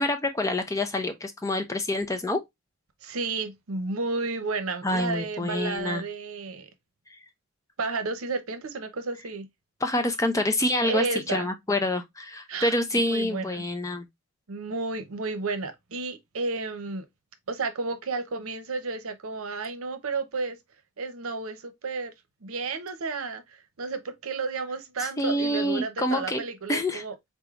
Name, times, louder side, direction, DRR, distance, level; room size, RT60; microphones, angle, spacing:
voice 1, 0.0-2.4 4.8-6.0 9.8-14.1 25.2-26.4 26.7-27.0, left 1 dB, 15° left, 0.4 m, -27 dB
voice 2, 3.0-6.7 7.8-9.5 10.8-11.5 12.5-12.8 13.1-13.6 14.5-17.0 17.5-20.6 21.0-22.1 22.4-27.1, right 4 dB, 85° right, 0.7 m, -32 dB
3.9 x 3.5 x 2.3 m
head